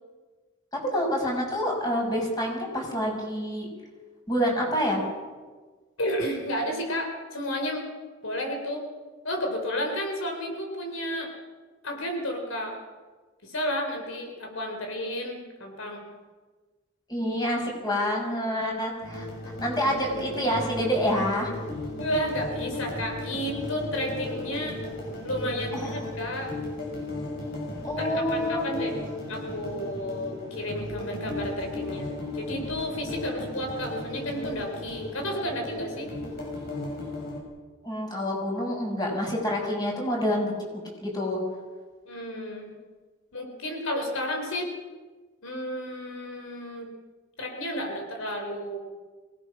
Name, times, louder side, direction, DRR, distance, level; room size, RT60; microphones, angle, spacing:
voice 1, 0.9-3.7 4.3-5.0 17.1-19.3 19.6-21.5 25.7-26.0 27.8-28.9 37.8-40.5 41.0-41.4, equal, 20° left, 0 dB, 6.0 m, -27 dB
voice 2, 6.0-7.8 8.2-8.8 9.2-11.3 11.8-12.8 13.4-16.0 22.0-24.8 25.2-26.6 28.0-29.0 29.3-36.1 42.1-42.7 43.3-44.7 45.4-46.9 47.4-48.8, equal, 85° left, 3 dB, 4.3 m, -32 dB
sound 1, 19.0-37.4, left 2 dB, 50° left, 7.0 m, -36 dB
25.0 x 18.5 x 6.2 m, 1.4 s
head